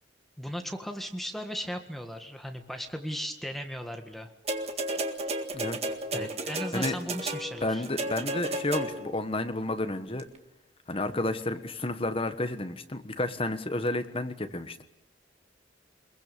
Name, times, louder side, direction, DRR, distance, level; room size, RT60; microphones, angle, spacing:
voice 1, 0.4-4.3 6.1-7.9, equal, ahead, 5 dB, 1.7 m, -36 dB
sound 1, 4.5-9.2 10.2-10.3, right 2 dB, 35° right, 1.8 m, -33 dB
voice 2, 7.6-10.3 10.9-14.8, left 2 dB, 30° left, 9 dB, 1.4 m, -31 dB
24.0 x 22.0 x 6.9 m, 0.85 s
head